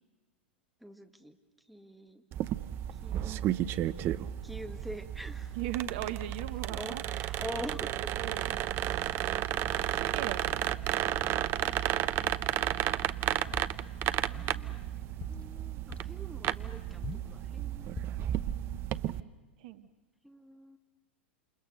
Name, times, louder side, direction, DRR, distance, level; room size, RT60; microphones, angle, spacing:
voice 1, 0.8-1.4 1.7-2.2 2.9-3.9 4.4-5.6 6.7-8.3 11.5-12.7 14.1-14.8 15.3-18.0 20.2-20.8, equal, ahead, 5 dB, 2.1 m, -45 dB
sound 1, 2.3-19.2, right 12 dB, 35° right, 0.8 m, -33 dB
voice 2, 5.6-7.0 7.3-7.4 8.1-8.6 9.9-10.6 19.6-19.9, right 12 dB, 50° right, 12 dB, 1.3 m, -38 dB
sound 2, 11.0-11.5 12.2-12.5 12.8-13.0 13.4-14.5 14.9-15.6 15.9-16.1 17.0-17.4 17.9-18.3, left 5 dB, 20° left, 1.4 m, -46 dB
28.5 x 28.5 x 6.7 m, 1.3 s
figure-of-eight pair, 95°, 6 cm